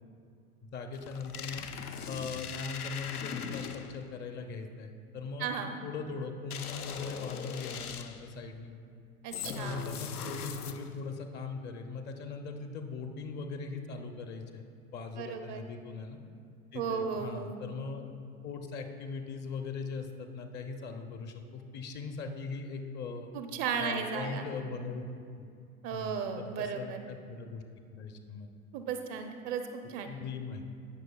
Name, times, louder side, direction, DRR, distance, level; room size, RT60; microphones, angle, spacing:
voice 1, 0.6-1.7 2.1-5.5 5.8-8.7 9.4-14.6 14.9-16.2 16.7-18.1 18.4-23.3 23.8-25.0 25.4-25.5 25.9-27.6 27.9-28.5 30.0-30.6, left 4 dB, 25° left, 6 dB, 0.6 m, -40 dB
sound 1, 0.9-4.1 6.5-8.3 9.3-11.1, left 7 dB, 90° left, 0.6 m, -40 dB
voice 2, 5.4-5.8 9.2-9.8 15.1-15.6 16.7-17.6 23.3-24.4 25.8-27.0 28.7-30.1, right 6 dB, 35° right, 6 dB, 0.5 m, -35 dB
17.0 x 6.3 x 2.3 m, 2.3 s
hypercardioid pair, 100°, 43 cm